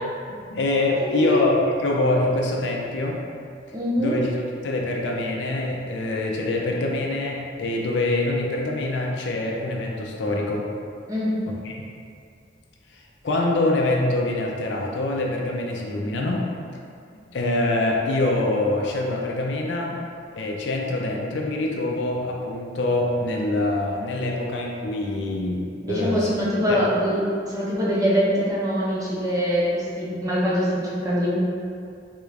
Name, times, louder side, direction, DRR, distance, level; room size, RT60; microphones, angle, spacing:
voice 1, 0.3-1.6 1.8-3.2 4.0-10.7 11.6-11.8 13.2-16.5 17.3-20.0 20.4-26.3 26.7-26.9, left 2 dB, 70° left, -1 dB, 0.4 m, -25 dB
voice 2, 1.0-1.5 3.7-4.2 11.1-11.3 25.8-31.3, equal, 20° right, -7 dB, 0.6 m, -23 dB
3.7 x 2.4 x 3.2 m, 2.4 s
head